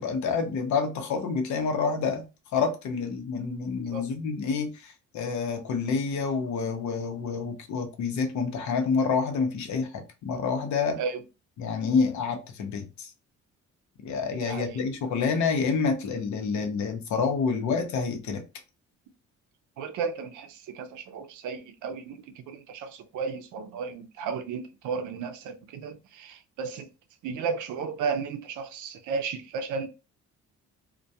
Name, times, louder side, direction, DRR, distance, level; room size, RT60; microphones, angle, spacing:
voice 1, 0.0-2.2 2.5-11.0 11.6-13.1 14.0-18.4, left 5 dB, 70° left, 0.7 m, -28 dB
voice 2, 14.4-14.8 19.8-26.9 27.2-29.9, right 5 dB, 80° right, 0.5 m, -34 dB
2.2 x 2.2 x 2.6 m
cardioid pair, 90°, 30 cm